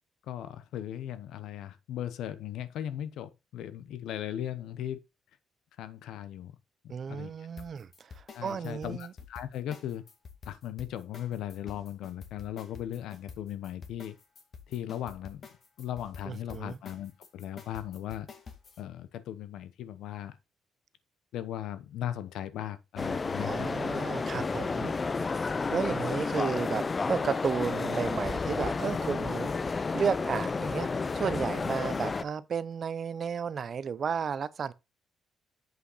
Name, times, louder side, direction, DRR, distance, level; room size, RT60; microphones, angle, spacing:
voice 1, 0.2-5.0 5.8-6.5 6.8-7.5 8.3-10.0 10.5-14.2 14.7-15.4 15.8-18.3 18.8-20.4 21.3-23.7, left 11 dB, 80° left, 0.8 m, -38 dB
voice 2, 6.9-9.1 16.3-16.8 23.4-34.7, right 6 dB, 50° right, 0.6 m, -33 dB
sound 1, 7.6-18.8, left 5 dB, 50° left, 2.0 m, -48 dB
sound 2, 23.0-32.2, left 4 dB, 30° left, 0.4 m, -31 dB
7.8 x 5.6 x 4.1 m
cardioid pair, 90°, 0 cm